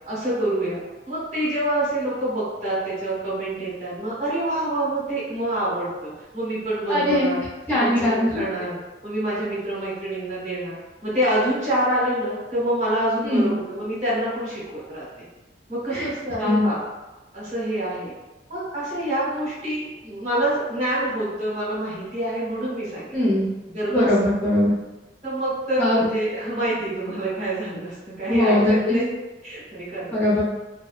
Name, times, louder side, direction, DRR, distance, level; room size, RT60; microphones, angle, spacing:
voice 1, 0.1-0.8 1.1-7.4 7.7-15.3 15.7-16.8 17.3-18.1 18.5-23.1 23.7-24.1 25.2-29.1 29.4-30.2, right 1 dB, 40° right, -8 dB, 1.0 m, -26 dB
voice 2, 6.9-7.3 7.7-8.4 13.2-13.5 15.9-16.1 16.4-16.7 23.1-23.5 23.9-24.7 25.8-26.0 28.3-29.0 30.1-30.4, left 1 dB, 10° left, -10 dB, 0.6 m, -20 dB
2.6 x 2.1 x 2.3 m, 1.1 s
head